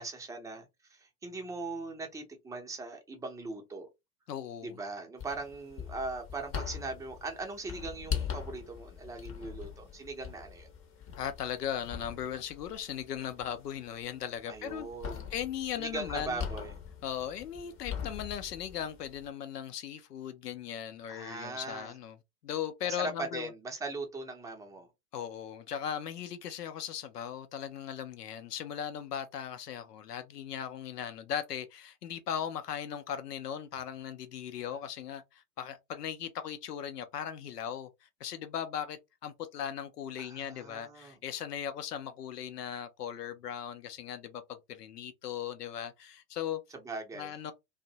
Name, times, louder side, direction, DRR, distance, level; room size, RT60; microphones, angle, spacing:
voice 1, 0.0-3.9 4.6-10.7 14.5-15.3 15.8-16.8 21.1-21.9 22.8-24.9 34.6-34.8 40.2-41.2 46.7-47.4, right 3 dB, 5° right, 0.5 m, -40 dB
voice 2, 4.3-4.7 11.2-14.9 15.3-16.4 17.0-22.2 22.4-23.5 25.1-44.4 44.7-46.6 47.2-47.5, left 9 dB, 85° left, 0.5 m, -38 dB
sound 1, 5.2-19.3, left 7 dB, 30° left, 0.6 m, -42 dB
2.5 x 2.1 x 2.7 m
hypercardioid pair, 95°, 46 cm